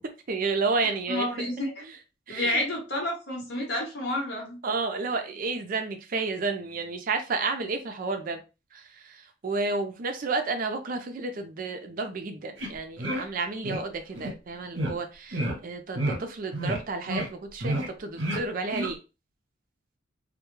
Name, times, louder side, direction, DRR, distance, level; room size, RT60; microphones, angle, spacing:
voice 1, 0.3-1.3 2.3-2.6 4.6-8.4 8.7-19.0, right 3 dB, 45° right, 6 dB, 0.4 m, -31 dB
voice 2, 1.1-1.7 2.3-4.6, left 1 dB, 60° left, -1 dB, 1.0 m, -29 dB
sound 1, 12.6-12.7 13.0-13.2 13.6-13.8 14.2-14.3 14.8-14.9 15.3-15.6 15.9-16.2 16.5-16.8 17.1-17.3 17.6-17.9 18.2-18.4 18.7-18.9, right 1 dB, 70° right, 0.8 m, -29 dB
2.2 x 2.2 x 3.0 m, 0.30 s
head